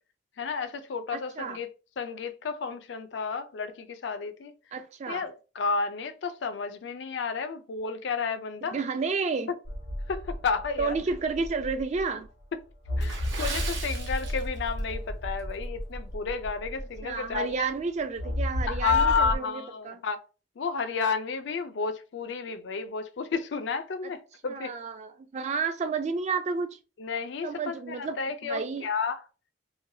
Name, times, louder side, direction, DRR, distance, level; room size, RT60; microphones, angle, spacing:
voice 1, 0.4-1.7 2.0-4.5 5.1-8.8 10.1-11.0 13.0-17.6 18.7-20.2 20.6-24.7 27.0-29.2, left 5 dB, 65° left, 0.4 m, -31 dB
voice 2, 1.1-1.6 4.7-5.2 8.6-9.5 10.8-12.3 17.0-20.0 24.0-24.1 24.5-26.8 27.4-28.2 28.4-28.9, right 4 dB, 35° right, 0.3 m, -31 dB
sound 1, 9.6-12.2 12.8-17.5 18.2-19.4, equal, 85° left, 1.1 m, -33 dB
Water / Splash splatter, 13.0-14.9 15.2-15.4 16.0-16.2 16.7-16.8, right 4 dB, 75° right, 0.8 m, -38 dB
3.1 x 2.2 x 2.6 m
head